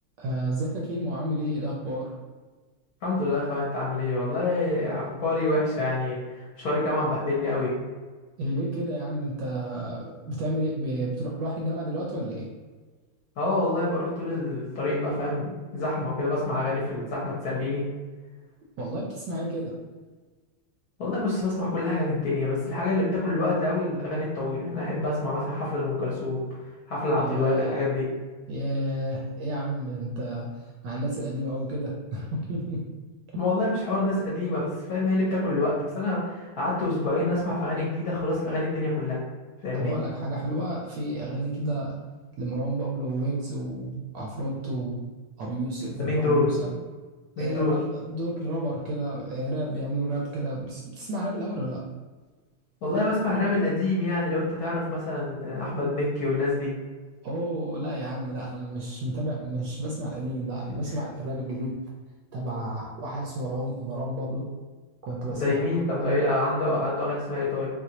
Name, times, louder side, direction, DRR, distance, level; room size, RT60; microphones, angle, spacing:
voice 1, 0.2-2.1 8.4-12.5 18.8-19.7 27.2-27.8 28.5-32.8 39.7-42.0 42.4-45.0 45.4-46.7 47.4-51.8 57.2-61.8 62.3-64.4 65.0-66.2, right 1 dB, 70° right, -3 dB, 1.1 m, -31 dB
voice 2, 3.0-7.7 13.4-17.8 21.0-26.4 26.9-28.0 33.4-39.2 39.6-39.9 46.0-46.7 47.4-47.7 52.8-56.7 65.3-67.7, left 2 dB, 60° left, -6 dB, 1.1 m, -26 dB
4.0 x 2.4 x 2.8 m, 1.3 s
omnidirectional pair, 2.3 m